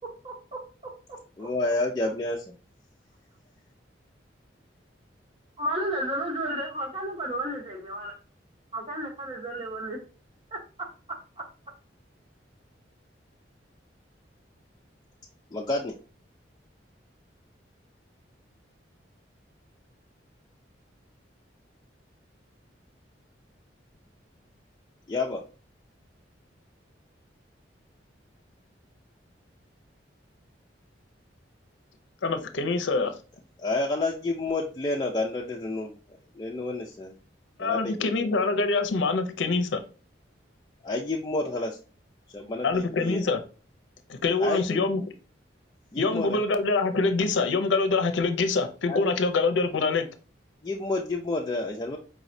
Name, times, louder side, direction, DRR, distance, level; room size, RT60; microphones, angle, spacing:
voice 1, 1.4-2.5 15.5-15.9 25.1-25.4 33.6-35.9 36.3-37.1 37.6-38.2 40.8-41.8 42.3-43.3 44.4-45.0 45.9-46.4 48.9-49.0 50.6-52.0, left 2 dB, 20° left, 0.4 m, -29 dB
voice 2, 5.6-8.1 8.7-10.0 10.5-10.6, right 1 dB, 30° right, 1.0 m, -32 dB
voice 3, 32.2-33.2 37.6-39.8 42.6-43.4 44.1-45.0 46.0-50.1, left 3 dB, 80° left, 0.5 m, -25 dB
4.8 x 3.1 x 2.6 m
head